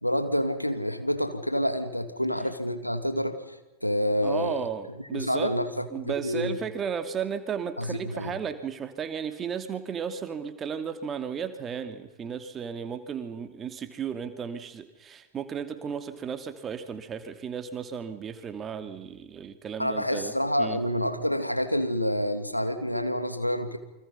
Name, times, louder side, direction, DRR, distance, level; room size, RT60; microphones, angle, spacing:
voice 1, 0.0-3.4 3.8-6.6 7.8-8.3 19.8-23.8, equal, 90° left, 8 dB, 2.5 m, -28 dB
voice 2, 4.2-5.5 5.9-20.8, right 7 dB, 25° right, 8 dB, 2.6 m, -34 dB
29.0 x 25.5 x 5.7 m, 0.97 s
figure-of-eight pair, 90°, 0 cm